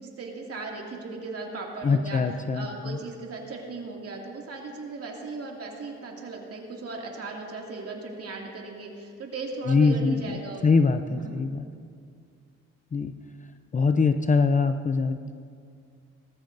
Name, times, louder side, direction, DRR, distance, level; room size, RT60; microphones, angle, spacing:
voice 1, 0.0-2.2 2.5-10.7 11.1-11.4, right 3 dB, 50° right, -1 dB, 2.4 m, -37 dB
voice 2, 1.8-3.0 9.7-11.7 12.9-13.1 13.7-15.3, left 4 dB, 25° left, 9 dB, 0.5 m, -23 dB
19.5 x 14.0 x 2.6 m, 2.2 s
cardioid pair, 90°, 30 cm